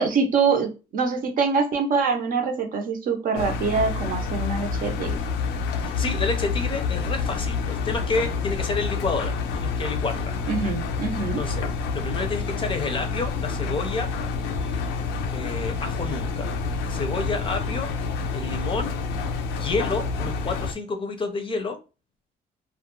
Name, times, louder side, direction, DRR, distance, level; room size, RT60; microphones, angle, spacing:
voice 1, 0.0-5.2 10.5-11.4, right 5 dB, 55° right, 0.6 m, -24 dB
Engine, 3.4-20.7, left 5 dB, 80° left, 0.4 m, -28 dB
voice 2, 5.8-10.4 11.4-11.7 11.9-14.1 15.3-16.5 16.9-17.9 18.3-19.0 19.6-21.8, left 3 dB, 30° left, 0.5 m, -29 dB
2.3 x 2.1 x 3.0 m
cardioid pair, 110°, 17 cm